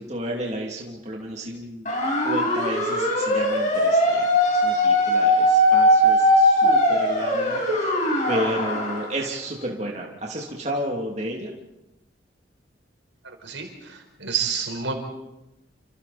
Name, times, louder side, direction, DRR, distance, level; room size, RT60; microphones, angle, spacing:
voice 1, 0.0-1.9 2.2-4.3 4.5-7.9 8.3-11.5, right 1 dB, 35° right, -1 dB, 2.9 m, -31 dB
sound 1, 1.9-9.1, equal, 40° left, 6.3 m, -20 dB
voice 2, 13.4-14.9, right 6 dB, 80° right, 3 dB, 4.9 m, -29 dB
28.5 x 28.0 x 4.3 m, 0.93 s
head